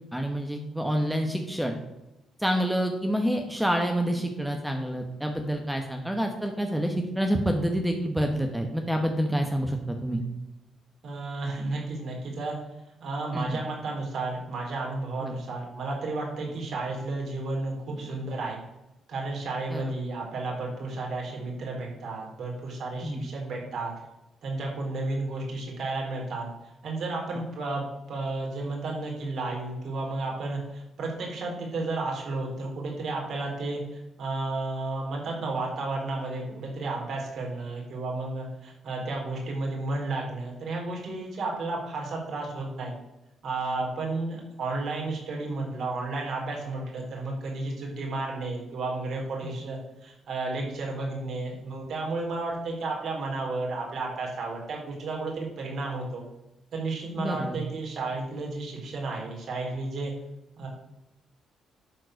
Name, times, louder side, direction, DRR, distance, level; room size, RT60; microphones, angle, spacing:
voice 1, 0.1-1.7 2.4-10.2 13.3-13.6 15.2-15.3 19.7-19.9 23.0-23.3 57.2-57.6, equal, 5° right, 3 dB, 1.2 m, -28 dB
voice 2, 11.0-12.6 13.0-18.6 19.1-23.9 24.4-26.5 26.8-42.9 43.4-56.2 56.7-60.1 60.6-60.7, right 2 dB, 60° right, -1 dB, 3.8 m, -32 dB
10.5 x 4.4 x 6.4 m, 0.94 s
cardioid pair, 90°, 0 cm